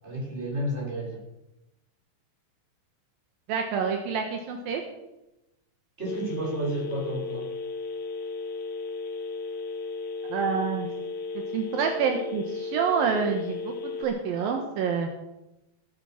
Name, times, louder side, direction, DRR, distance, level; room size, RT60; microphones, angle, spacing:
voice 1, 0.0-1.2 6.0-7.5, right 1 dB, 15° right, -3 dB, 6.5 m, -31 dB
voice 2, 3.5-4.8 10.3-10.9 11.5-15.1, right 6 dB, 70° right, 3 dB, 3.1 m, -27 dB
Telephone, 6.1-14.0, left 3 dB, 60° left, 2.1 m, -35 dB
19.0 x 12.0 x 6.0 m, 0.93 s
omnidirectional pair, 4.3 m